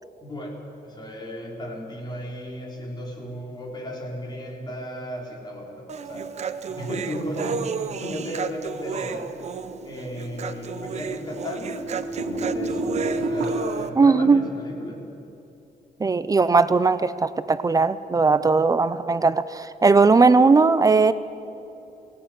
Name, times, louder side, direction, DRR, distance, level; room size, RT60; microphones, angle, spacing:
voice 1, 0.2-6.4 6.6-9.3 9.8-11.8 12.2-15.1, equal, 25° left, -1 dB, 3.8 m, -35 dB
Human voice, 5.9-13.9, right 6 dB, 45° right, 0.8 m, -32 dB
sound 1, 8.8-13.5, right 2 dB, 75° right, 1.8 m, -31 dB
voice 2, 14.0-14.5 16.0-21.1, right 4 dB, 20° right, 14 dB, 0.5 m, -18 dB
18.5 x 17.0 x 9.2 m, 2.9 s
wide cardioid pair, 155°, 16 cm